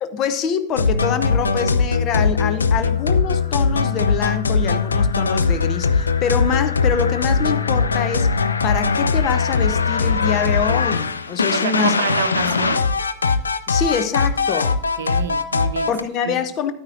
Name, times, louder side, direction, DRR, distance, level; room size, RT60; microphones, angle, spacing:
voice 1, 0.0-8.3 8.6-11.9 12.5-12.6 13.7-14.8 15.9-16.7, left 7 dB, 35° left, 0.7 m, -25 dB
sound 1, 0.8-16.0, left 4 dB, 75° left, 0.5 m, -20 dB
voice 2, 11.5-12.8 15.0-15.9 16.2-16.4, right 7 dB, 65° right, 0.6 m, -27 dB
11.5 x 9.6 x 2.5 m
figure-of-eight pair, 90°, 0 cm